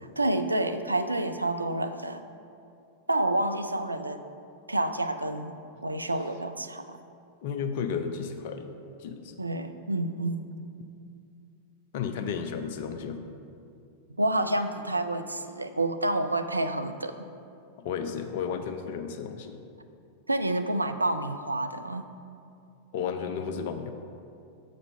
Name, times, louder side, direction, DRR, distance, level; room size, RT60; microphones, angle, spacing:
voice 1, 0.2-2.2 3.1-4.2 4.7-7.0 9.4-10.4 14.2-17.3 20.3-22.1, right 1 dB, 80° right, 9 dB, 0.4 m, -29 dB
voice 2, 7.4-8.7 9.0-9.4 11.9-13.2 17.8-19.5 22.9-23.9, left 6 dB, 50° left, 7 dB, 0.6 m, -33 dB
7.0 x 5.2 x 5.4 m, 2.5 s
figure-of-eight pair, 90°, 0 cm